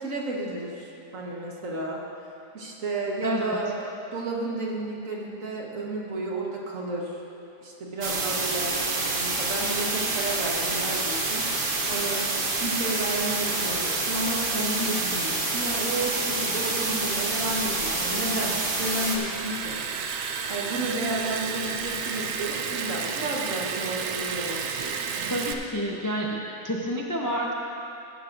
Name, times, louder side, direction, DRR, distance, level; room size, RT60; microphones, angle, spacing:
voice 1, 0.0-2.0 2.5-3.7 4.1-7.2 7.6-20.1 20.5-24.6, right 2 dB, 60° right, -2 dB, 1.7 m, -32 dB
voice 2, 3.2-3.7 25.3-27.5, equal, 30° left, -1 dB, 0.3 m, -29 dB
sound 1, 8.0-19.2, right 3 dB, 40° right, 1.0 m, -27 dB
Liquid, 17.5-25.5, right 6 dB, 80° right, 1.1 m, -32 dB
16.0 x 11.5 x 2.5 m, 2.7 s
omnidirectional pair, 1.6 m